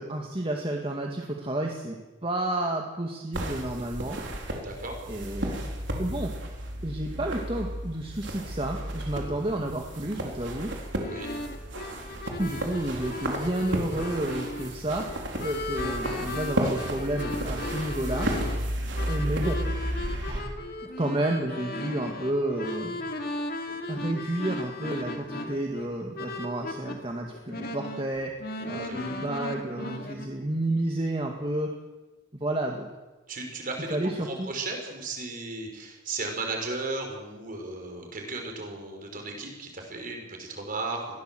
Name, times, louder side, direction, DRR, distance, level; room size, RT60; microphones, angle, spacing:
voice 1, 0.0-4.2 5.1-5.7 6.0-6.3 6.8-10.7 12.4-15.2 15.4-18.3 19.1-19.6 20.3-20.7 21.0-23.1 23.9-28.3 28.7-31.7 32.3-32.9 33.9-34.5, right 1 dB, 30° right, 1 dB, 1.9 m, -31 dB
sound 1, 3.3-20.4, right 1 dB, 70° right, 4.1 m, -33 dB
voice 2, 4.6-5.0 11.0-11.3 28.7-29.0 33.3-41.2, right 3 dB, 45° right, 2 dB, 5.2 m, -35 dB
sound 2, 11.0-27.0 27.3-30.3, left 2 dB, 50° left, 2.5 m, -36 dB
21.5 x 16.5 x 7.7 m, 1.2 s
head